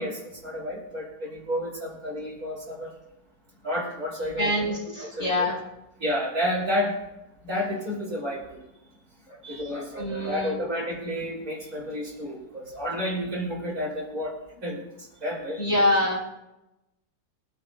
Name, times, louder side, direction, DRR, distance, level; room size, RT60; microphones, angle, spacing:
voice 1, 0.0-2.9 3.6-4.5 5.1-5.5 6.0-7.0 7.4-8.6 9.4-14.3 14.6-14.8 15.2-15.6, equal, 45° right, -3 dB, 3.4 m, -30 dB
voice 2, 4.4-5.6 9.3-9.4 9.7-10.6 15.6-16.2, left 1 dB, 20° left, -5 dB, 4.8 m, -26 dB
22.5 x 12.0 x 2.3 m, 0.94 s
omnidirectional pair, 2.1 m